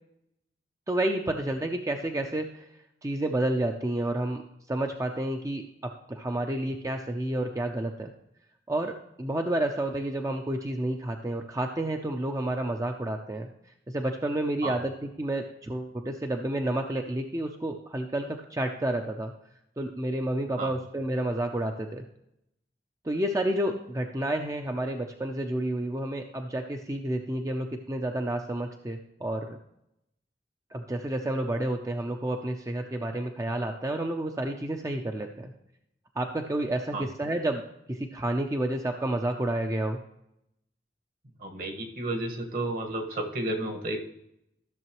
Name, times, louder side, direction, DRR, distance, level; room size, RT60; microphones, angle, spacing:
voice 1, 0.9-2.7 3.0-4.4 4.7-8.1 8.7-13.5 13.9-14.9 15.2-19.3 19.8-22.0 23.0-29.6 30.7-35.5 36.2-37.6 37.9-40.0, right 1 dB, 20° right, 4 dB, 0.5 m, -30 dB
voice 2, 41.4-44.0, right 1 dB, 55° right, 4 dB, 1.6 m, -32 dB
14.0 x 6.6 x 3.1 m, 0.80 s
head